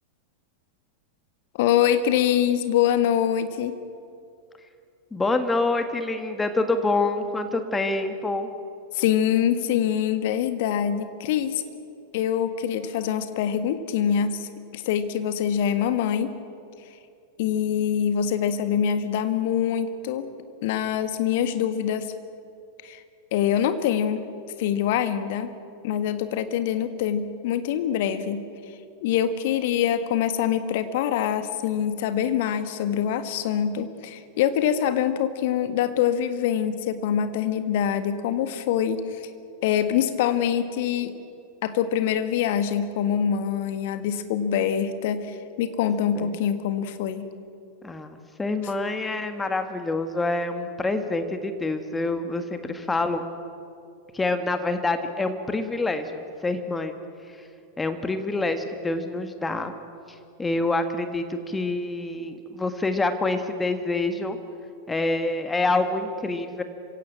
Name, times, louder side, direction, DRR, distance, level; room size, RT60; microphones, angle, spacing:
voice 1, 1.5-3.8 8.9-11.6 12.1-16.4 17.4-20.3 20.6-22.1 22.8-23.0 23.3-24.2 24.6-25.5 25.8-28.4 29.0-39.3 39.6-41.1 41.6-47.3, left 9 dB, 50° left, 11 dB, 1.7 m, -24 dB
voice 2, 5.1-8.5 46.1-46.4 47.8-53.2 54.1-57.0 57.8-59.7 60.4-64.4 64.9-66.6, left 2 dB, 10° left, 8 dB, 1.7 m, -26 dB
27.0 x 17.0 x 8.8 m, 2.5 s
figure-of-eight pair, 90°, 0 cm